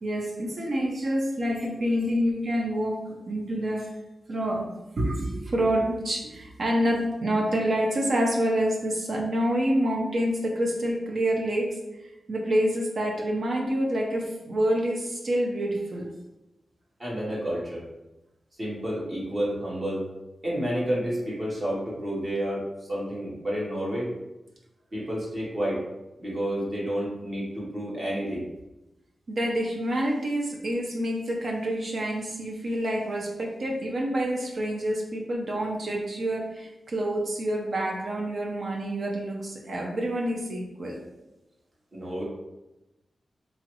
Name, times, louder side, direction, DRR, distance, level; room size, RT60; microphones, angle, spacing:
voice 1, 0.0-3.9 4.3-16.1 29.3-41.0, equal, 55° right, -1 dB, 0.5 m, -27 dB
voice 2, 17.0-17.8 18.6-20.0 20.4-24.1 24.9-25.8 26.2-28.4 41.9-42.2, equal, 40° right, -6 dB, 1.0 m, -30 dB
3.0 x 2.4 x 2.9 m, 0.98 s
wide cardioid pair, 135°, 0 cm